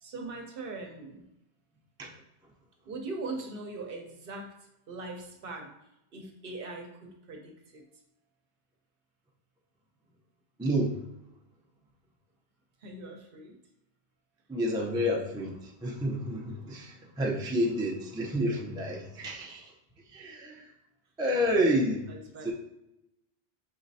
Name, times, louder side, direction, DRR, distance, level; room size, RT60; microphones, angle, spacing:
voice 1, 0.0-1.3 2.9-4.5 4.9-5.7 6.1-7.9 12.8-13.6 22.1-22.5, right 3 dB, 65° right, 3 dB, 0.8 m, -41 dB
voice 2, 10.6-11.0 14.5-19.7 20.1-20.7 21.2-22.1 22.4-22.5, equal, 5° right, -2 dB, 0.3 m, -29 dB
5.0 x 3.0 x 2.7 m, 0.86 s
omnidirectional pair, 1.1 m